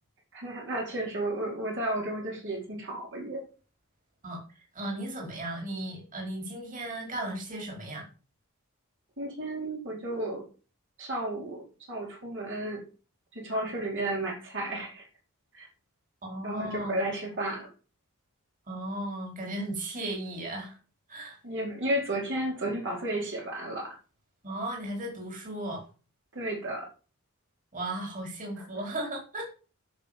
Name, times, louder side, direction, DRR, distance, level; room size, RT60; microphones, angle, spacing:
voice 1, 0.3-3.5 9.2-10.4 11.0-12.8 13.3-15.1 15.5-15.7 16.4-17.7 21.4-23.9 26.3-26.9 28.6-28.7, right 1 dB, 60° right, -1 dB, 4.5 m, -33 dB
voice 2, 4.7-8.1 16.2-17.0 18.7-20.8 21.1-21.4 24.4-25.8 27.7-29.4, right 1 dB, 35° right, 0 dB, 4.7 m, -35 dB
10.5 x 6.5 x 7.4 m, 0.36 s
head